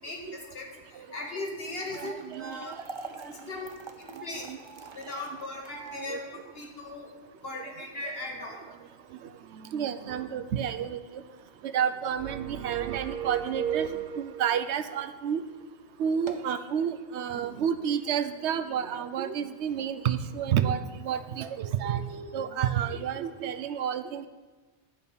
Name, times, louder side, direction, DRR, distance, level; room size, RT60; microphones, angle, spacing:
voice 1, 0.0-2.8 3.2-3.7 4.0-4.5 4.9-7.1 7.4-8.6, left 2 dB, 60° left, 0 dB, 2.1 m, -38 dB
sound 1, 1.5-13.8 14.2-14.3 15.0-15.2 15.5-15.6 16.1-16.6, right 3 dB, 30° right, 0.8 m, -48 dB
voice 2, 1.9-2.8 3.2-3.3 4.2-4.6 4.8-4.9 5.7-6.2 9.5-11.2 11.6-15.4 16.0-24.3, right 8 dB, 85° right, 11 dB, 0.9 m, -30 dB
sound 2, 12.2-14.6, right 9 dB, 60° right, 0.8 m, -34 dB
11.0 x 5.5 x 8.4 m, 1.3 s
omnidirectional pair, 1.1 m